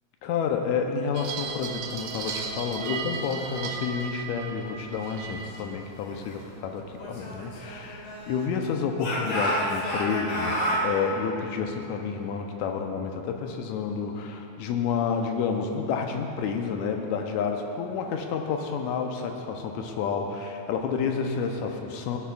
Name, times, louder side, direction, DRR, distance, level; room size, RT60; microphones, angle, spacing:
voice 1, 0.2-22.2, left 6 dB, 80° left, 3 dB, 2.0 m, -30 dB
sound 1, 1.1-8.6, right 6 dB, 90° right, 2.3 m, -38 dB
Speech / Shout, 7.0-8.5 9.0-10.9, equal, 55° left, 2.5 m, -29 dB
17.5 x 8.4 x 2.4 m, 2.8 s
omnidirectional pair, 3.5 m